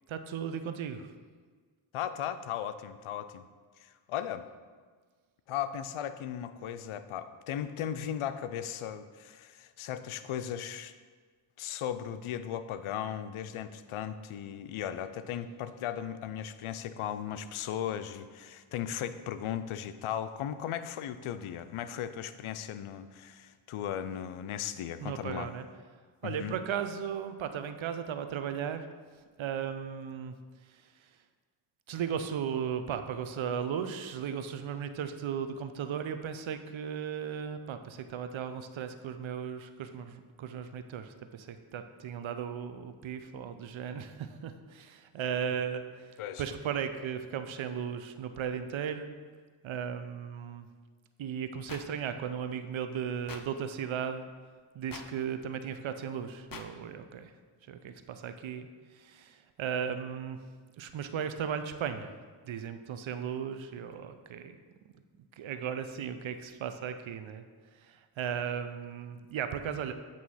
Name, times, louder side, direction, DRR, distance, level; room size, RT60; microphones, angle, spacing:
voice 1, 0.1-1.1 25.0-25.6 26.2-28.9 29.4-30.3 30.6-31.1 31.9-49.1 49.6-50.7 51.2-54.3 54.7-57.3 57.7-60.4 60.8-62.1 62.4-64.6 65.4-67.4 67.7-69.9, right 8 dB, 65° right, 9 dB, 0.7 m, -36 dB
voice 2, 1.9-3.4 3.8-4.5 5.5-10.9 11.6-25.5 26.2-26.5 46.2-46.4, left 10 dB, 75° left, 11 dB, 0.6 m, -37 dB
sound 1, 51.7-51.8 53.3-53.4 54.9-55.1 56.5-56.7, left 6 dB, 45° left, 0.8 m, -42 dB
8.6 x 3.0 x 5.5 m, 1.5 s
cardioid pair, 45°, 50 cm